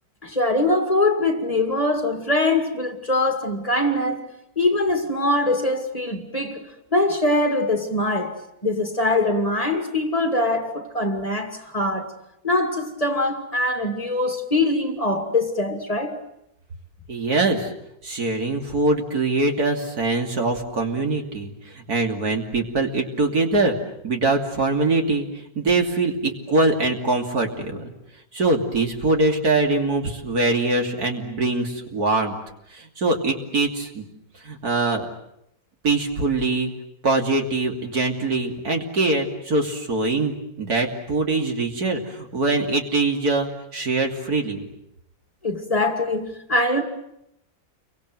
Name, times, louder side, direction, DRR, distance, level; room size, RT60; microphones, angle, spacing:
voice 1, 0.2-4.3 4.6-6.6 6.9-8.3 8.6-12.1 12.4-16.2 45.4-46.8, left 2 dB, 25° left, 2.6 m, -23 dB
voice 2, 17.1-17.7 18.0-23.8 24.0-27.9 28.3-32.3 32.7-34.1 34.4-35.1 35.8-36.7 37.0-44.6, right 2 dB, 80° right, 3.4 m, -23 dB
29.5 x 24.0 x 7.9 m
omnidirectional pair, 1.6 m